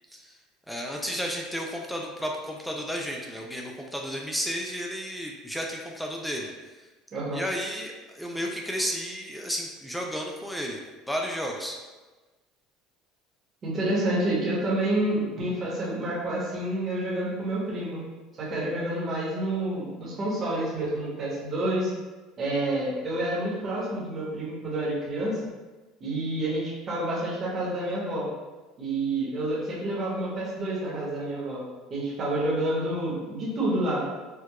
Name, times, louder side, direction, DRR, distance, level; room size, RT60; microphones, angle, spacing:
voice 1, 0.7-6.5 7.3-10.8 11.1-11.8, equal, ahead, 0 dB, 0.3 m, -32 dB
voice 2, 13.6-18.0 18.4-21.9 22.4-25.4 26.0-28.3 28.8-31.6 31.9-34.0, right 1 dB, 30° right, -6 dB, 1.1 m, -28 dB
4.5 x 2.3 x 2.3 m, 1.2 s
cardioid pair, 145°, 0 cm